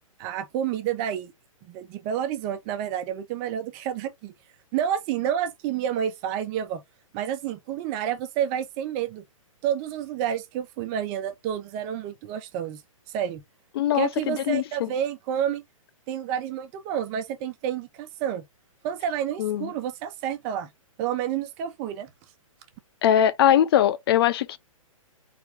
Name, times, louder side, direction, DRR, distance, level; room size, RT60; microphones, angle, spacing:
voice 1, 0.2-1.3 1.6-4.3 4.7-6.8 7.1-9.2 9.6-12.8 13.1-13.4 13.9-15.6 16.1-18.4 18.8-20.7 21.0-22.1, right 9 dB, 35° right, 1.1 m, -29 dB
voice 2, 13.8-14.6 19.4-19.7 23.0-24.6, left 11 dB, 45° left, 0.5 m, -21 dB
3.9 x 3.3 x 3.6 m
hypercardioid pair, 130°, 18 cm